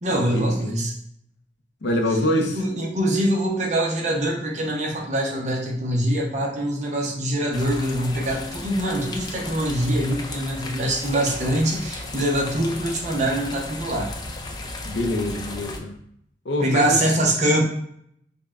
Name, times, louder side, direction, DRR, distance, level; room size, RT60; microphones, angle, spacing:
voice 1, 0.0-0.9 2.5-14.1 16.6-17.6, right 1 dB, 40° right, -1 dB, 0.7 m, -24 dB
voice 2, 1.8-2.6 14.8-15.9 16.4-17.0, left 1 dB, 70° left, 3 dB, 0.5 m, -24 dB
sound 1, 7.5-15.8, left 2 dB, 25° left, 0.3 m, -35 dB
5.1 x 2.2 x 2.3 m, 0.69 s
head